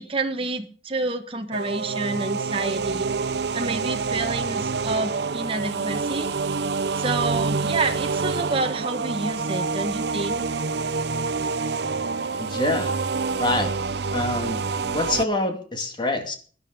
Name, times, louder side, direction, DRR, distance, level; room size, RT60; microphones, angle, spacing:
voice 1, 0.0-3.1 3.5-6.3 6.9-10.6, right 3 dB, 30° right, 5 dB, 1.2 m, -29 dB
sound 1, 1.5-15.2, right 4 dB, 70° right, 0.7 m, -27 dB
voice 2, 12.4-12.9 13.4-13.7 14.1-14.6 14.9-16.3, left 2 dB, 25° left, 5 dB, 2.3 m, -25 dB
17.0 x 11.0 x 5.0 m, 0.43 s
head